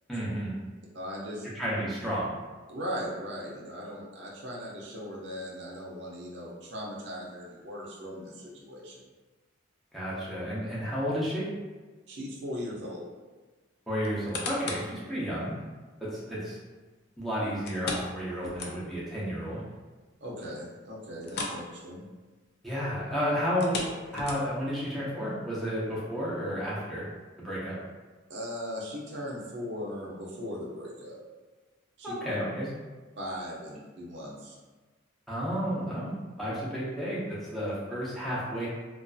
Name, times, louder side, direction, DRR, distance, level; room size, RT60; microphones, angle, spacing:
voice 1, 0.1-0.6 1.6-2.4 9.9-11.4 13.9-15.5 16.0-16.6 17.2-19.6 22.6-23.8 24.1-27.1 27.4-27.8 32.0-32.7 35.3-38.7, equal, ahead, -9 dB, 0.6 m, -32 dB
voice 2, 0.9-1.5 2.7-9.0 12.1-13.1 20.2-22.0 28.3-31.2 32.0-32.1 33.2-34.6, equal, 60° right, -5 dB, 0.5 m, -38 dB
sound 1, 14.0-14.9 15.5-15.6 17.6-19.1 19.4-19.5 20.0-20.1 21.2-21.7 21.9-22.1 23.5-24.7 25.3-25.4, left 3 dB, 55° left, 0.4 m, -36 dB
2.5 x 2.3 x 2.3 m, 1.3 s
head